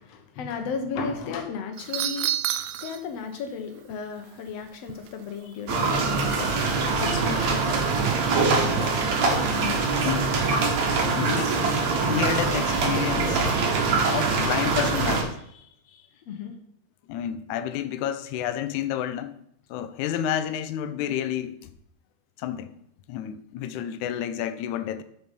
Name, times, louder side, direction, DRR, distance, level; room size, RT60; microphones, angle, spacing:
voice 1, 0.0-2.3 2.8-6.7 7.0-7.9 9.5-9.8 13.9-14.3 15.9-16.5, left 5 dB, 65° left, 2.0 m, -35 dB
sound 1, 1.7-3.0 3.3-3.4 3.9-4.0 4.5-5.5 5.8-6.0 6.2-6.9 7.2-7.7 8.0-8.4 8.8-9.6 10.0-10.2 10.8-11.5 12.0-12.5 13.3-13.5, right 12 dB, 80° right, 1.9 m, -33 dB
sound 2, 5.7-15.2, right 4 dB, 65° right, 2.8 m, -23 dB
voice 2, 8.7-9.1 10.0-10.4 11.0-13.6 14.1-15.4 17.1-19.3 19.7-21.7 22.4-22.7 23.1-25.0, left 10 dB, 80° left, 2.1 m, -30 dB
7.7 x 6.8 x 5.3 m
omnidirectional pair, 3.5 m